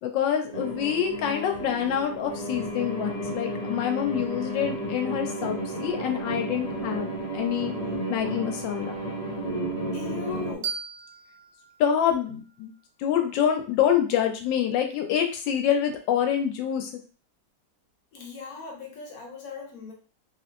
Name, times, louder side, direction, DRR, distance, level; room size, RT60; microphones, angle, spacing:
voice 1, 0.0-7.7 8.1-8.9 11.8-12.7 13.0-16.9, left 9 dB, 90° left, 4 dB, 1.3 m, -26 dB
sound 1, 0.5-10.5, right 1 dB, 35° right, 0.6 m, -32 dB
voice 2, 9.9-10.7 18.1-19.9, left 5 dB, 60° left, -1 dB, 1.1 m, -38 dB
sound 2, 10.6-13.4, right 6 dB, 70° right, 0.8 m, -39 dB
3.0 x 2.6 x 2.5 m, 0.37 s
omnidirectional pair, 1.9 m